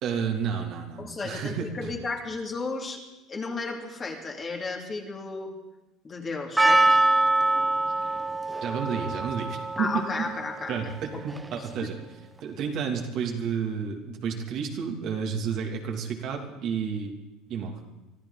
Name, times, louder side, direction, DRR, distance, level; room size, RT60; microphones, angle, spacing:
voice 1, 0.0-1.7 8.6-10.0 10.7-12.0 12.4-17.1 17.5-17.7, right 6 dB, 60° right, 2 dB, 2.7 m, -31 dB
voice 2, 1.0-3.0 3.3-5.5 6.0-7.0 9.8-11.2 11.6-11.9, left 3 dB, 30° left, 1 dB, 2.7 m, -34 dB
Percussion, 6.6-11.8, right 2 dB, 10° right, 1.1 m, -25 dB
24.0 x 14.0 x 4.1 m, 1.0 s
supercardioid pair, 105°, 0 cm